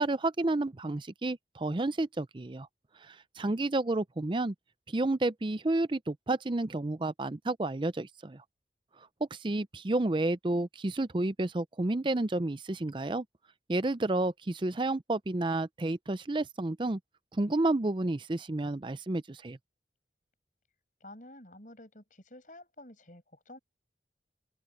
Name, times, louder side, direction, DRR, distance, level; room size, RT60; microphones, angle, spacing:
voice 1, 0.0-2.7 3.1-4.5 4.9-8.4 9.3-13.2 13.7-17.0 17.4-19.6, right 2 dB, 30° right, 0.5 m, -30 dB
voice 2, 21.0-23.6, left 1 dB, 45° left, 7.0 m, -50 dB
open air
head